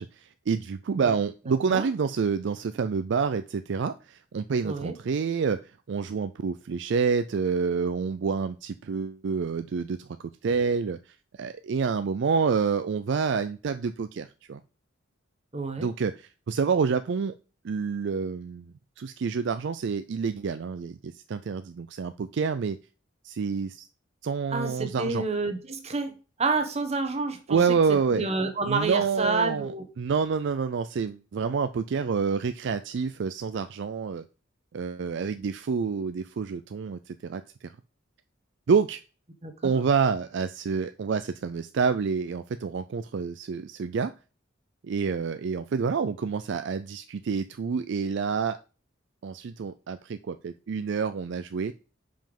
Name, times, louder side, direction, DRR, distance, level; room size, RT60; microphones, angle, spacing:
voice 1, 0.0-5.6 5.9-10.1 10.4-11.0 11.4-14.6 15.8-17.3 17.6-22.8 23.2-23.9 24.2-25.2 27.5-28.3 28.7-29.7 30.0-34.2 34.7-37.4 38.7-39.0 39.6-44.1 44.8-48.6 49.2-51.7, right 5 dB, 60° right, 11 dB, 0.4 m, -28 dB
voice 2, 15.5-15.9 24.5-27.6 28.1-29.8 39.4-39.8, right 3 dB, 35° right, 6 dB, 1.2 m, -29 dB
5.6 x 5.2 x 5.2 m, 0.34 s
head